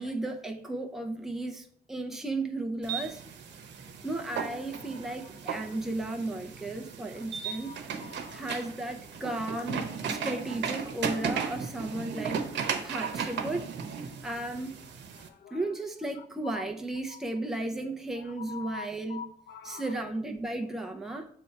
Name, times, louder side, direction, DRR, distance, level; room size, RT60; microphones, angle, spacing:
voice 1, 0.0-3.2 4.0-7.7 8.3-13.7 14.2-14.7 15.5-19.3 19.6-21.3, right 2 dB, ahead, 2 dB, 0.6 m, -35 dB
sound 1, 2.8-15.3, right 6 dB, 80° right, 0.9 m, -36 dB
voice 2, 7.5-8.4 15.2-15.8 16.4-16.6 18.4-19.8, left 6 dB, 75° left, 9 dB, 0.7 m, -44 dB
7.5 x 3.4 x 4.6 m, 0.63 s
cardioid pair, 110°, 18 cm